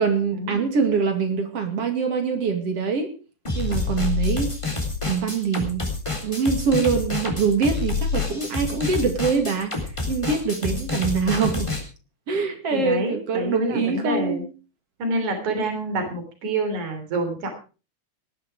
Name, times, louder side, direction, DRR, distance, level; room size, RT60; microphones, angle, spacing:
voice 1, 0.0-3.1 3.5-4.5 5.1-5.9 6.2-11.7 12.3-14.5, right 5 dB, 55° right, 6 dB, 3.1 m, -24 dB
sound 1, 3.5-11.8, left 3 dB, 10° left, 3.5 m, -27 dB
voice 2, 12.7-14.4 15.0-17.5, right 1 dB, 70° right, 6 dB, 4.8 m, -27 dB
19.0 x 11.5 x 4.8 m, 0.35 s
omnidirectional pair, 3.4 m